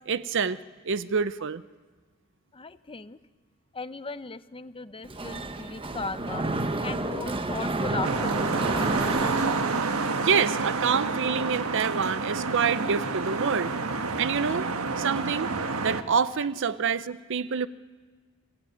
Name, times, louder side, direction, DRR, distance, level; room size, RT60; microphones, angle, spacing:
voice 1, 0.1-0.6 0.8-1.6 10.2-13.7 14.2-14.7 15.0-15.5 15.8-17.7, right 6 dB, 60° right, 15 dB, 0.7 m, -27 dB
voice 2, 2.5-3.2 3.7-6.4 6.8-8.6 16.4-16.5, left 4 dB, 25° left, 13 dB, 0.7 m, -37 dB
Mechanisms, 5.0-10.2, right 2 dB, 25° right, 1.0 m, -31 dB
sound 1, 8.0-16.0, right 4 dB, 85° right, 1.3 m, -29 dB
25.5 x 15.5 x 9.5 m, 1.4 s
head